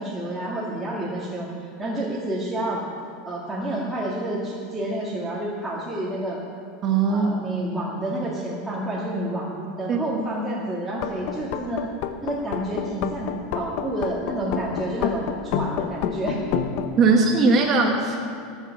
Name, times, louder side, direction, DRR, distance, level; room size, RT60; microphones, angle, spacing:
voice 1, 0.0-1.5 1.8-2.8 3.2-6.4 7.1-11.9 12.2-16.4, right 1 dB, 5° right, -7 dB, 2.2 m, -29 dB
voice 2, 6.8-7.3 9.9-10.2 17.0-18.3, right 4 dB, 30° right, 2 dB, 1.4 m, -20 dB
sound 1, 10.9-16.9, left 8 dB, 55° left, 1.0 m, -28 dB
18.0 x 8.0 x 7.2 m, 2.5 s
supercardioid pair, 150°, 0 cm